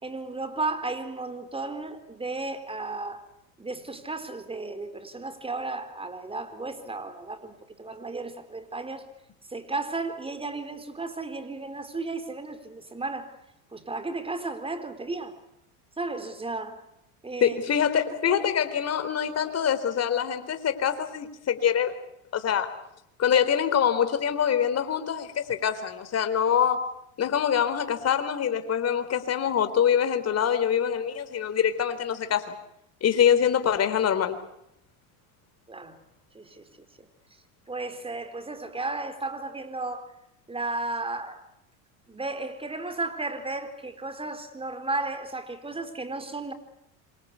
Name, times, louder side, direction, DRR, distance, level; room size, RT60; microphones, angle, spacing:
voice 1, 0.0-3.2 3.6-9.1 9.5-13.4 13.7-15.4 16.0-16.8 17.2-17.6 18.3-18.5 35.7-36.0 36.3-36.7 37.0-37.1 37.7-40.1 40.5-41.5 42.1-46.5, right 3 dB, 15° right, 4.2 m, -34 dB
voice 2, 17.4-21.9 22.3-22.7 23.2-26.8 27.2-32.6 33.0-34.4, left 8 dB, 35° left, 4.1 m, -24 dB
27.5 x 25.5 x 8.4 m
supercardioid pair, 105°, 43 cm